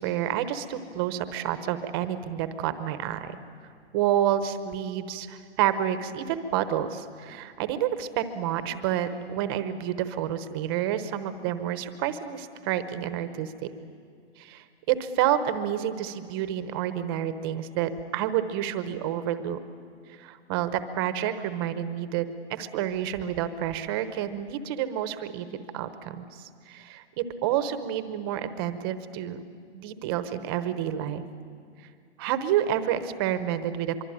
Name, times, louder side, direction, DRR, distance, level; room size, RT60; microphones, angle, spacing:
voice 1, 0.0-3.3 3.9-13.7 14.4-19.6 20.1-29.4 29.7-31.2 32.2-34.0, right 10 dB, 20° right, 11 dB, 0.9 m, -29 dB
24.0 x 24.0 x 8.9 m, 2.3 s
hypercardioid pair, 155°, 35 cm